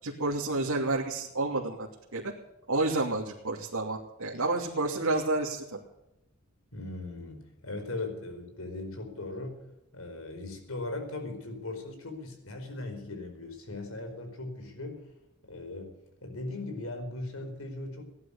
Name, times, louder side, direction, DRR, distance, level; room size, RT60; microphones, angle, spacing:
voice 1, 0.0-2.3 2.7-5.8, right 2 dB, 80° right, -3 dB, 2.9 m, -30 dB
voice 2, 6.7-9.6 9.9-15.0 15.4-15.9 16.2-18.0, left 2 dB, 70° left, 4 dB, 4.8 m, -39 dB
18.0 x 11.5 x 7.1 m, 0.90 s
head